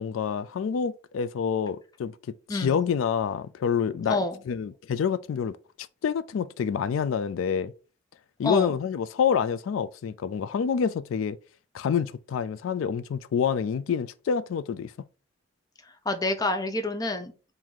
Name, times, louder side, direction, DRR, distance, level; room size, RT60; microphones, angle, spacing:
voice 1, 0.0-2.1 2.5-4.2 4.5-5.6 6.0-7.7 8.4-11.4 11.7-14.9, left 7 dB, 85° left, 0.3 m, -27 dB
voice 2, 4.1-4.4 8.4-8.7 16.1-17.3, left 2 dB, 20° left, 0.5 m, -27 dB
3.7 x 2.7 x 4.6 m
head